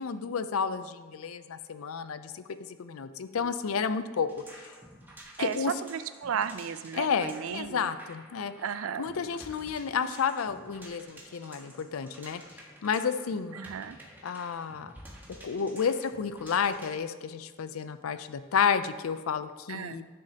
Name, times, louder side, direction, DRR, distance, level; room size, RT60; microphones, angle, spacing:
voice 1, 0.0-4.7 5.4-5.7 6.9-8.5 9.0-13.6 14.2-14.9 15.3-20.0, left 6 dB, 85° left, 12 dB, 0.5 m, -31 dB
sound 1, 4.3-17.0, right 1 dB, 10° right, 1.3 m, -51 dB
voice 2, 5.8-7.9 8.6-9.0 13.5-14.0 19.7-20.1, right 7 dB, 75° right, 13 dB, 0.4 m, -34 dB
11.0 x 6.4 x 2.8 m, 1.5 s
head